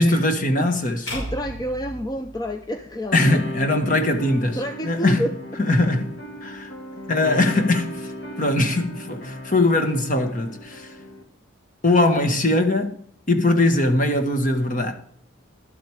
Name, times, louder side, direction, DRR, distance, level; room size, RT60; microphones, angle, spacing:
voice 1, 0.0-1.0 3.1-5.3 5.6-6.1 6.4-6.7 7.1-8.1 8.4-10.9 11.8-13.0 13.3-14.9, left 2 dB, 40° left, 1.5 m, -21 dB
sound 1, 1.1-3.3, equal, 75° left, 5.6 m, -35 dB
voice 2, 1.1-3.4 4.5-5.3, equal, 20° left, 0.6 m, -29 dB
sound 2, 3.2-11.2, equal, 55° left, 1.6 m, -36 dB
12.0 x 7.8 x 4.9 m
head